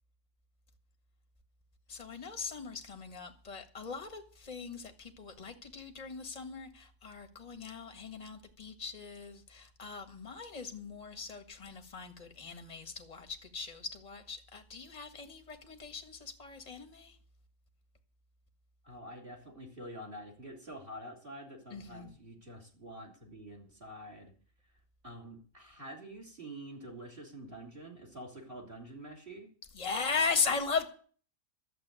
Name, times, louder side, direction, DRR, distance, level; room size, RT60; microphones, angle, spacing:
voice 1, 1.9-17.2 21.7-22.1 29.7-30.9, left 5 dB, 25° left, 1.6 m, -38 dB
voice 2, 18.8-24.3 25.0-29.5, right 1 dB, 35° right, 3.5 m, -47 dB
12.0 x 7.9 x 8.9 m
omnidirectional pair, 1.7 m